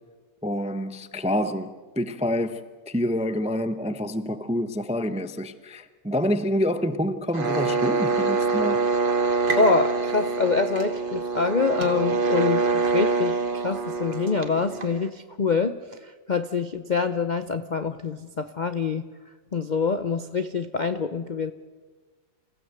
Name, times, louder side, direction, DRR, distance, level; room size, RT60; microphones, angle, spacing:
voice 1, 0.4-8.8, equal, 10° right, 0.4 m, -27 dB
sound 1, 7.3-15.1, right 3 dB, 35° right, 1.3 m, -25 dB
sound 2, 9.1-14.8, right 3 dB, 75° right, 3.0 m, -40 dB
voice 2, 9.5-19.0 19.5-21.5, left 4 dB, 50° left, 0.5 m, -25 dB
28.0 x 15.5 x 8.0 m
omnidirectional pair, 1.8 m